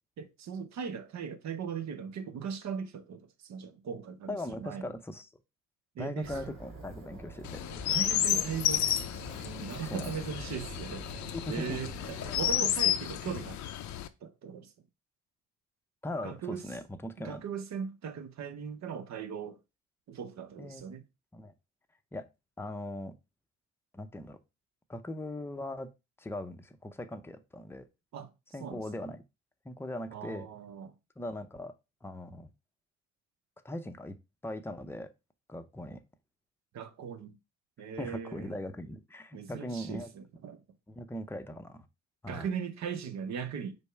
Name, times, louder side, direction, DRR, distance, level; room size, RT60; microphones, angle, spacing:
voice 1, 0.2-4.9 5.9-6.6 7.9-8.9 9.6-11.1 11.5-13.6 14.2-14.7 16.2-16.6 17.2-19.6 20.1-21.0 28.1-28.3 28.6-28.8 30.1-30.9 36.7-37.4 37.8-38.6 39.3-40.6 42.3-43.8, right 7 dB, 65° right, 0.8 m, -39 dB
voice 2, 4.3-5.3 6.0-7.6 9.8-10.1 11.5-11.8 16.0-17.4 20.6-20.8 21.3-21.5 22.1-22.3 22.6-23.1 23.9-24.4 24.9-25.9 26.2-27.8 28.5-29.2 29.6-30.5 31.2-31.7 32.0-32.5 33.6-34.2 34.4-35.1 35.5-36.0 38.0-40.1 40.9-41.9 42.2-42.5, left 1 dB, 10° left, 0.5 m, -39 dB
sound 1, 6.2-12.6, right 2 dB, 45° right, 2.2 m, -46 dB
Chirp tweet, 7.4-14.1, left 11 dB, 70° left, 0.5 m, -32 dB
5.2 x 2.1 x 4.5 m
cardioid pair, 90°, 30 cm